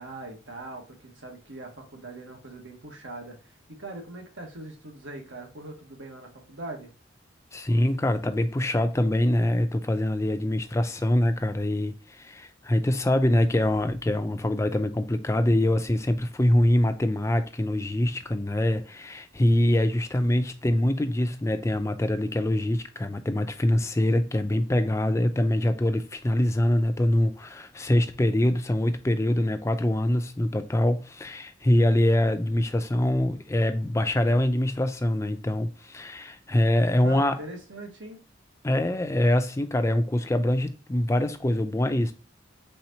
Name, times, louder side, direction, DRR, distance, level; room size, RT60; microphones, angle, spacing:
voice 1, 0.0-6.9 37.0-38.2, right 2 dB, 80° right, 1.4 m, -41 dB
voice 2, 7.5-37.4 38.6-42.1, left 1 dB, 15° left, 0.4 m, -24 dB
4.3 x 3.9 x 2.7 m
head